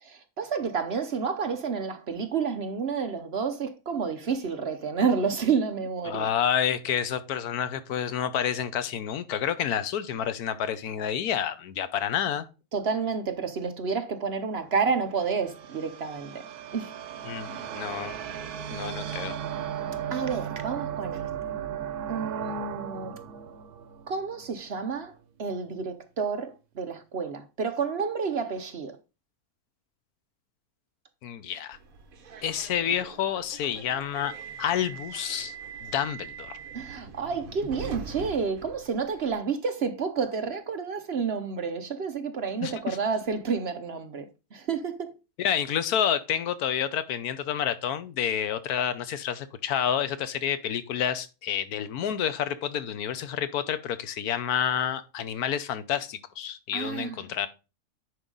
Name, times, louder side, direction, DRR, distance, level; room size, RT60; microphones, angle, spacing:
voice 1, 0.0-6.3 12.7-16.4 16.7-16.9 17.5-17.7 20.1-21.3 22.1-23.2 24.1-25.1 25.4-29.0 36.7-44.3 44.5-45.1 56.7-57.3, right 5 dB, 50° right, 0.9 m, -30 dB
voice 2, 6.1-12.5 17.3-18.1 18.7-19.4 31.2-31.8 32.4-34.3 34.6-35.5 35.9-36.5 42.6-43.0 45.4-57.5, left 9 dB, 80° left, 1.3 m, -29 dB
sound 1, 14.5-24.8, right 9 dB, 85° right, 1.3 m, -36 dB
Subway metro underground, 31.7-39.3, right 6 dB, 70° right, 1.4 m, -42 dB
9.8 x 4.9 x 3.9 m
omnidirectional pair, 1.6 m